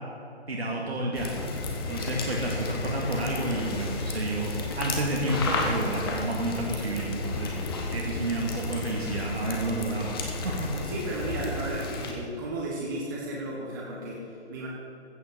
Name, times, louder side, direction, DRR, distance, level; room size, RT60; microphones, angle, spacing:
voice 1, 0.5-1.4 1.9-7.5 7.9-10.1 10.4-10.7, right 1 dB, 65° right, -3 dB, 2.1 m, -30 dB
sound 1, 1.1-12.1, left 3 dB, 20° left, 1.1 m, -32 dB
voice 2, 10.7-14.7, right 1 dB, 20° right, -3 dB, 1.0 m, -34 dB
15.0 x 6.4 x 7.6 m, 2.9 s
figure-of-eight pair, 145°, 34 cm